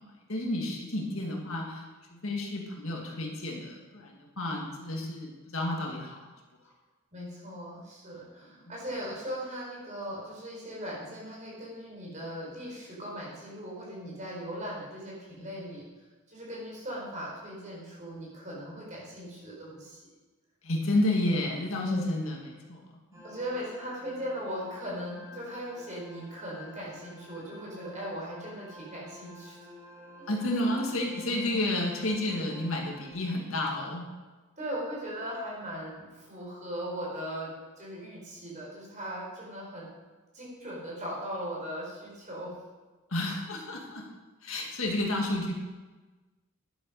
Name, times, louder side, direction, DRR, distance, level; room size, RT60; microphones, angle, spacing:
voice 1, 0.0-1.9 2.1-6.2 20.6-22.8 23.1-23.2 30.3-34.1 43.1-44.0 44.4-45.5, left 1 dB, 60° left, 0 dB, 1.9 m, -31 dB
voice 2, 7.1-15.8 16.3-20.0 21.8-22.1 23.2-29.6 34.6-39.9 40.3-42.5, equal, 35° right, -4 dB, 4.6 m, -39 dB
sound 1, 23.1-33.1, left 2 dB, 15° right, 2.5 m, -50 dB
11.0 x 9.1 x 5.4 m, 1.3 s
head